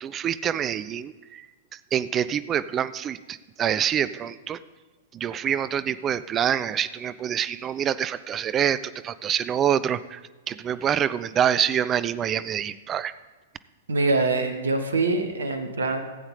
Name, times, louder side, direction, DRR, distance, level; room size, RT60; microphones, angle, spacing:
voice 1, 0.0-1.4 1.9-4.6 5.1-8.8 9.0-10.2 10.5-13.1, right 9 dB, 25° right, 15 dB, 0.3 m, -26 dB
voice 2, 13.9-16.0, right 3 dB, 70° right, 7 dB, 1.1 m, -24 dB
15.5 x 7.9 x 3.7 m, 1.2 s
figure-of-eight pair, 100°, 0 cm